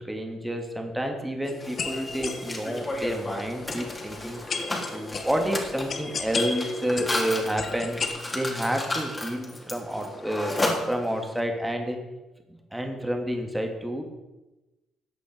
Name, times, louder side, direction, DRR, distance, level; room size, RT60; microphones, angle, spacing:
voice 1, 0.0-4.4 4.9-8.0 8.3-12.0 12.5-14.0, equal, 10° right, 3 dB, 2.6 m, -29 dB
sound 1, 1.4-8.1, left 5 dB, 50° left, 1.5 m, -35 dB
Mechanisms, 1.6-11.4, left 2 dB, 25° left, 3.5 m, -33 dB
14.5 x 8.2 x 5.4 m, 1.1 s
supercardioid pair, 60°, 0 cm